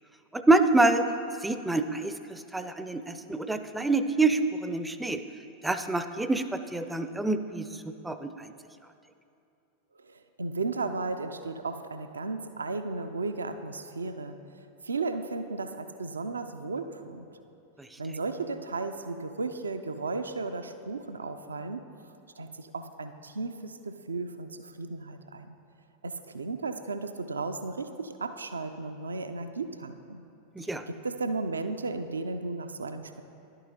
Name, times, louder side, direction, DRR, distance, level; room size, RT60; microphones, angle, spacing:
voice 1, 0.3-1.0 1.4-5.2 5.6-7.7 8.0-8.5 17.8-17.9 30.6-30.8, right 2 dB, 5° right, 9 dB, 0.4 m, -26 dB
voice 2, 10.0-17.3 18.0-21.9 22.4-25.5 26.0-30.2 30.9-33.2, right 3 dB, 75° right, 9 dB, 0.4 m, -35 dB
11.0 x 8.9 x 2.8 m, 2.7 s
figure-of-eight pair, 90°, 0 cm